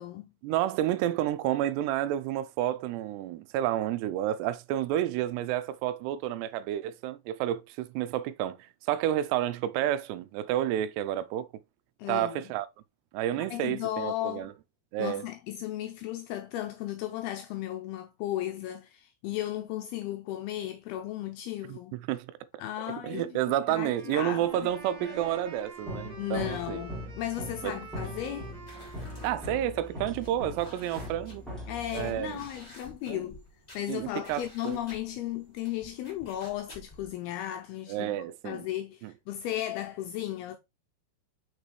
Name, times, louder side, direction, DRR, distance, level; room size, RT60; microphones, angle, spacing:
voice 1, 0.4-11.5 12.1-12.7 13.1-14.5 14.9-15.2 21.7-22.4 23.0-26.8 27.6-27.8 29.2-31.4 31.9-32.5 33.1-33.3 33.9-34.8 37.9-38.7 39.0-39.1, right 12 dB, 85° right, 2.6 m, -30 dB
voice 2, 12.0-12.4 13.3-14.5 15.0-22.0 22.6-23.4 23.7-24.7 26.2-28.5 31.7-33.4 33.7-38.2 38.4-40.6, left 13 dB, 85° left, 2.4 m, -35 dB
Wind instrument woodwind instrument, 23.6-31.5, right 4 dB, 35° right, 2.1 m, -48 dB
sound 1, 24.6-32.7, equal, ahead, 1.7 m, -41 dB
sound 2, 28.0-37.1, left 1 dB, 20° left, 1.2 m, -52 dB
6.1 x 5.2 x 3.1 m
omnidirectional pair, 4.9 m